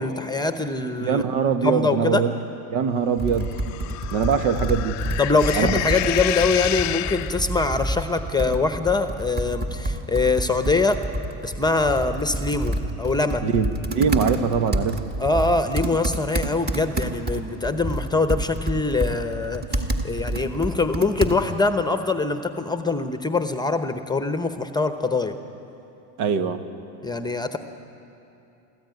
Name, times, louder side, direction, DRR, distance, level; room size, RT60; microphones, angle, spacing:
voice 1, 0.0-2.2 5.2-11.0 11.4-13.4 15.2-25.4 27.0-27.6, left 3 dB, 10° left, 8 dB, 0.9 m, -23 dB
voice 2, 1.0-2.3 2.7-3.6 4.1-5.0 5.5-5.7 13.4-15.0 26.2-26.6, right 6 dB, 70° right, 9 dB, 1.6 m, -22 dB
Computer keyboard, 3.2-21.7, right 1 dB, 20° right, 1.7 m, -29 dB
sound 1, 3.4-7.7, left 17 dB, 40° left, 0.5 m, -30 dB
24.5 x 14.5 x 9.3 m, 2.9 s
supercardioid pair, 115°, 47 cm